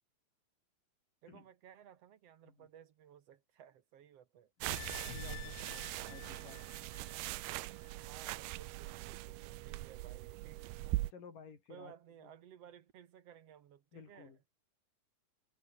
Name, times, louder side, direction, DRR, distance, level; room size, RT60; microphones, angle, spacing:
voice 1, 1.2-4.5 5.7-6.4 7.9-11.0 11.7-14.3, right 9 dB, 55° right, 1.9 m, -58 dB
sound 1, 4.6-11.1, right 18 dB, 85° right, 2.7 m, -41 dB
sound 2, 4.7-7.9 8.3-8.4, left 22 dB, 80° left, 2.1 m, -51 dB
voice 2, 4.7-6.6 11.1-11.9 12.2-12.3 13.9-14.4, left 6 dB, 60° left, 5.2 m, -54 dB
omnidirectional pair, 4.3 m